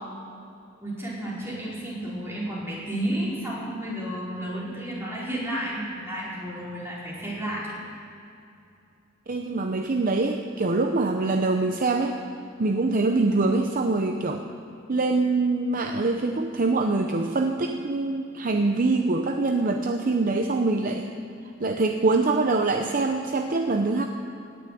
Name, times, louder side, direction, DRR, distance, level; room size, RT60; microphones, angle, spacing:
voice 1, 0.8-7.8, right 1 dB, 15° right, -7 dB, 4.5 m, -32 dB
voice 2, 9.3-12.2 12.6-14.4 14.9-21.1 21.6-24.1, right 3 dB, 45° right, 5 dB, 0.7 m, -24 dB
17.5 x 7.0 x 9.3 m, 2.6 s
head